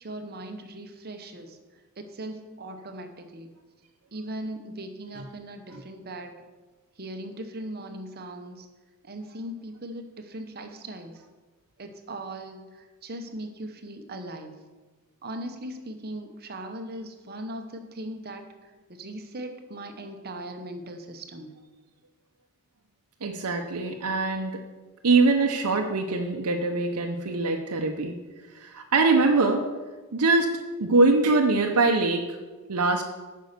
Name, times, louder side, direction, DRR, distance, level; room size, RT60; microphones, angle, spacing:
voice 1, 0.0-1.6 2.0-3.5 4.1-6.4 7.0-8.7 9.0-11.2 11.8-14.5 15.2-18.4 18.9-21.5, right 1 dB, 45° right, 6 dB, 1.0 m, -39 dB
voice 2, 23.2-24.6 25.0-28.1 28.6-29.6 30.1-30.5 30.8-32.2 32.7-33.1, right 3 dB, 85° right, 2 dB, 0.8 m, -23 dB
9.2 x 5.6 x 6.6 m, 1.3 s
head